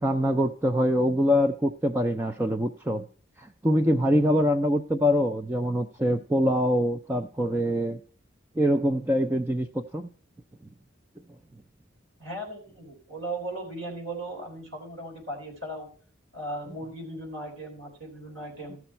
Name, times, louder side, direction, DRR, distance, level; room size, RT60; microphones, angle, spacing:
voice 1, 0.0-3.0 3.4-8.0 8.6-10.1, equal, 10° right, 4 dB, 0.4 m, -24 dB
voice 2, 12.2-15.9 16.3-18.8, right 1 dB, 75° right, 0 dB, 3.6 m, -37 dB
14.0 x 6.1 x 4.3 m, 0.43 s
head